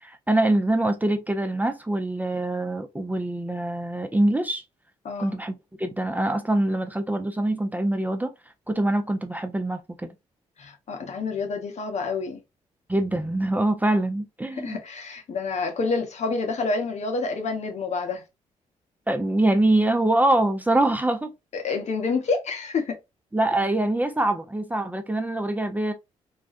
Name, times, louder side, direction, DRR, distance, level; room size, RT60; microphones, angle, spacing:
voice 1, 0.0-4.6 5.2-8.3 8.7-10.1 12.9-14.8 19.1-21.3 23.3-25.9, right 1 dB, 10° right, 0.5 m, -24 dB
voice 2, 5.0-5.4 10.6-12.4 14.5-18.2 21.5-23.0, left 4 dB, 55° left, 0.8 m, -28 dB
2.4 x 2.2 x 2.4 m
supercardioid pair, 50°, 14 cm